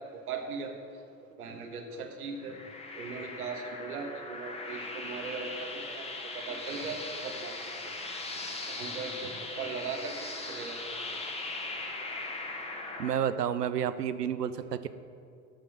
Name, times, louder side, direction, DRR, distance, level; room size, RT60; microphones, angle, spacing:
voice 1, 0.3-0.7 1.4-2.6 2.9-6.1 6.3-7.6 8.7-11.0 14.6-14.7, right 4 dB, 65° right, 4 dB, 1.3 m, -39 dB
sound 1, 2.4-13.1, left 2 dB, 15° left, 1.2 m, -39 dB
voice 2, 13.0-14.9, right 9 dB, 85° right, 14 dB, 0.5 m, -30 dB
12.0 x 4.8 x 6.3 m, 2.4 s
figure-of-eight pair, 75°, 46 cm